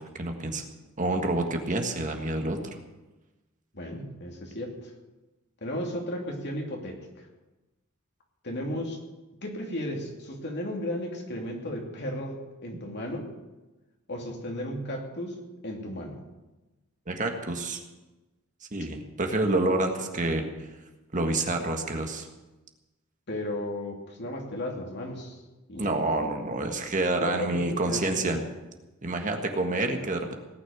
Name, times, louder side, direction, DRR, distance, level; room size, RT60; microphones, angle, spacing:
voice 1, 0.1-0.6 1.0-2.6 17.1-17.8 18.7-20.5 21.1-22.3 25.8-28.4 29.0-30.3, right 2 dB, 35° right, 4 dB, 1.6 m, -28 dB
voice 2, 3.7-4.9 5.6-7.3 8.4-9.0 9.4-13.3 14.1-15.4 15.6-16.2 23.3-25.4 25.7-26.0 27.2-28.5, left 1 dB, 55° left, 1 dB, 2.7 m, -34 dB
18.0 x 6.4 x 9.4 m, 1.1 s
head